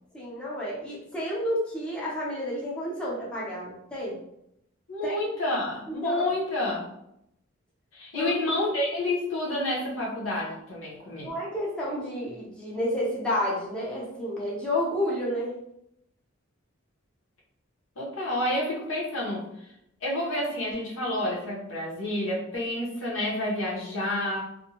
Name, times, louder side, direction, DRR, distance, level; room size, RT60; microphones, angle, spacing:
voice 1, 0.1-4.2 5.0-5.1 5.9-6.3 8.1-8.3 11.2-15.6, left 1 dB, 5° left, -7 dB, 0.6 m, -30 dB
voice 2, 4.9-6.9 7.9-11.3 18.0-19.4 20.0-24.4, left 1 dB, 85° left, -4 dB, 0.9 m, -29 dB
2.5 x 2.1 x 2.8 m, 0.79 s
head